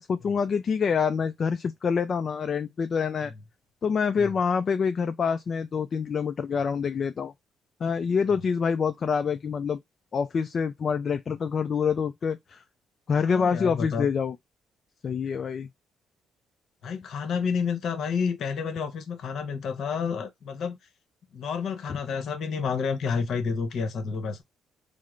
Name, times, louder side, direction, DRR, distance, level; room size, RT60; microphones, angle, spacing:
voice 1, 0.0-3.3 3.8-7.3 7.8-9.8 10.1-12.6 13.1-14.3 15.0-15.7, left 6 dB, 45° left, 0.3 m, -26 dB
voice 2, 13.1-14.1 16.8-20.8 21.3-24.4, left 6 dB, 70° left, 0.8 m, -30 dB
3.6 x 2.0 x 3.1 m
cardioid pair, 90°, 0 cm